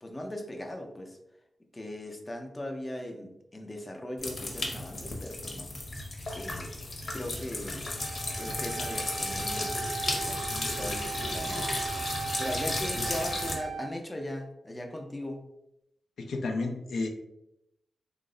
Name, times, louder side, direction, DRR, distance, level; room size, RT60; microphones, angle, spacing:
voice 1, 0.0-1.2 1.7-5.7 6.3-6.8 7.1-7.8 8.4-9.8 10.1-11.9 12.4-15.4, left 1 dB, 20° left, 3 dB, 0.5 m, -39 dB
sound 1, 4.2-13.5, left 2 dB, 50° left, 0.8 m, -34 dB
Wind instrument woodwind instrument, 8.0-13.9, right 6 dB, 40° right, 0.4 m, -38 dB
voice 2, 16.2-17.1, left 3 dB, 85° left, 3 dB, 0.4 m, -32 dB
3.0 x 2.0 x 3.6 m, 0.84 s
wide cardioid pair, 95°, 0 cm